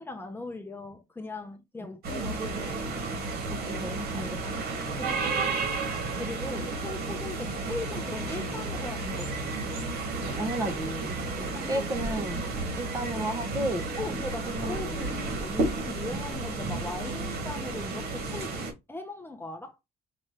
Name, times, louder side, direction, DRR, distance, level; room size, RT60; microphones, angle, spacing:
voice 1, 0.0-2.6 4.4-4.6 4.9-5.6 6.1-9.5 11.4-11.9 12.6-12.8 14.0-18.5 18.9-19.8, left 2 dB, 10° left, 0.8 m, -39 dB
sound 1, 2.0-18.7, right 3 dB, 65° right, 2.2 m, -32 dB
voice 2, 3.5-4.4 10.3-11.2 11.7-12.4 12.8-13.9 14.5-14.8, right 1 dB, 20° right, 1.0 m, -32 dB
5.7 x 2.6 x 3.4 m
cardioid pair, 110°, 17 cm